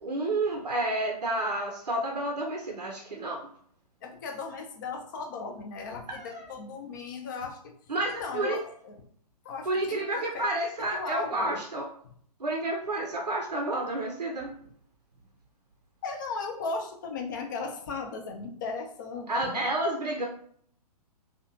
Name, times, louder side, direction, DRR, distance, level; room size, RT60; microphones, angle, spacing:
voice 1, 0.0-3.4 6.1-6.5 7.9-8.6 9.7-11.9 12.4-14.5 19.3-20.2, right 2 dB, 80° right, 1 dB, 0.5 m, -30 dB
voice 2, 4.0-7.7 8.2-9.0 9.4-10.5 10.8-11.6 16.0-19.7, left 4 dB, 30° left, 4 dB, 0.4 m, -37 dB
2.7 x 2.2 x 2.6 m, 0.62 s
figure-of-eight pair, 120°, 21 cm